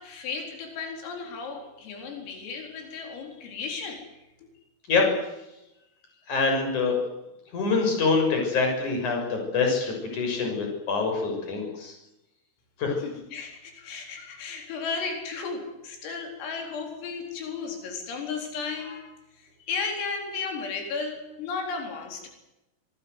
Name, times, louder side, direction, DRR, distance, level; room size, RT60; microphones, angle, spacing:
voice 1, 0.0-4.0 4.4-4.5 13.0-22.3, left 5 dB, 90° left, 3 dB, 6.8 m, -34 dB
voice 2, 6.3-7.0 7.5-11.9 12.8-13.0, left 4 dB, 35° left, 2 dB, 7.9 m, -25 dB
25.5 x 21.0 x 8.0 m, 0.93 s
omnidirectional pair, 5.8 m